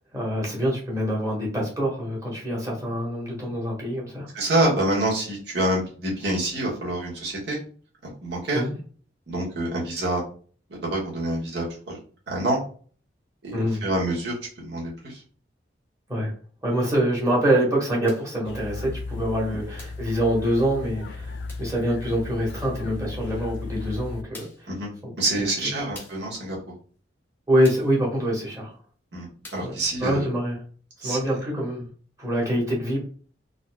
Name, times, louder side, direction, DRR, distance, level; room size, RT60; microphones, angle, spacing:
voice 1, 0.1-4.3 8.5-8.8 13.5-13.8 16.1-16.3 16.6-24.5 25.0-25.1 27.5-28.7 29.6-29.7 30.0-30.6 31.0-31.9 32.2-33.1, equal, 20° right, -4 dB, 1.2 m, -25 dB
voice 2, 4.3-7.6 8.2-8.6 9.3-10.2 10.7-12.0 12.3-12.6 13.4-15.2 24.7-24.9 25.2-26.6 29.1-30.3 31.0-31.2, right 1 dB, 65° right, -5 dB, 1.4 m, -26 dB
sound 1, 18.1-18.4 19.8-20.1 21.5-21.8 23.5-23.6 24.3-24.7 25.9-26.3 27.6-28.0 29.4-29.8, left 2 dB, 10° left, 0.8 m, -45 dB
sound 2, 18.4-24.2, left 3 dB, 65° left, 0.3 m, -36 dB
3.9 x 2.6 x 2.2 m, 0.42 s
head